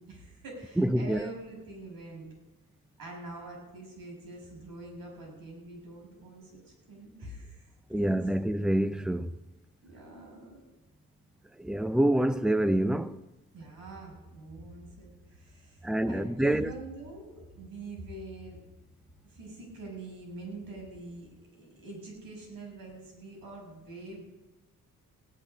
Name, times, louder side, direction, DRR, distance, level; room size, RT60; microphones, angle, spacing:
voice 1, 0.1-2.3 3.0-8.2 9.8-10.6 13.5-18.6 19.3-24.2, right 2 dB, 75° right, 6.3 m, -45 dB
voice 2, 0.8-1.3 7.9-9.3 11.6-13.1 15.8-16.7, right 1 dB, ahead, 0.6 m, -26 dB
17.0 x 6.2 x 9.8 m
cardioid pair, 85°, 34 cm